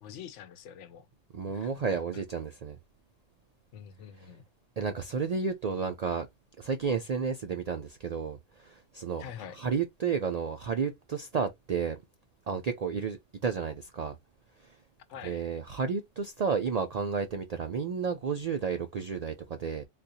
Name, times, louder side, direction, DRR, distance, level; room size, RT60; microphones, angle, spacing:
voice 1, 0.0-1.1 1.5-2.0 3.7-4.4 9.2-9.6 15.1-15.5, left 9 dB, 75° left, 0.9 m, -46 dB
voice 2, 1.3-2.8 4.8-6.3 6.6-9.2 9.6-12.0 12.5-14.2 14.6-14.7 15.2-19.8, right 5 dB, 75° right, 0.3 m, -32 dB
3.8 x 2.5 x 2.6 m
omnidirectional pair, 1.3 m